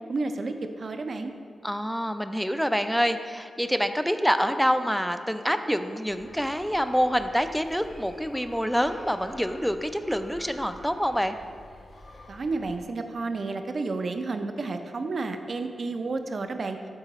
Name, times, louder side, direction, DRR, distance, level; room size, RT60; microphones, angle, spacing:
voice 1, 0.1-1.3 12.3-16.8, right 3 dB, 55° right, 7 dB, 0.5 m, -31 dB
voice 2, 1.6-11.4, equal, ahead, 9 dB, 0.4 m, -26 dB
sound 1, 6.1-12.8, left 1 dB, 65° left, 1.2 m, -48 dB
8.0 x 3.7 x 4.1 m, 2.2 s
cardioid pair, 65°, 0 cm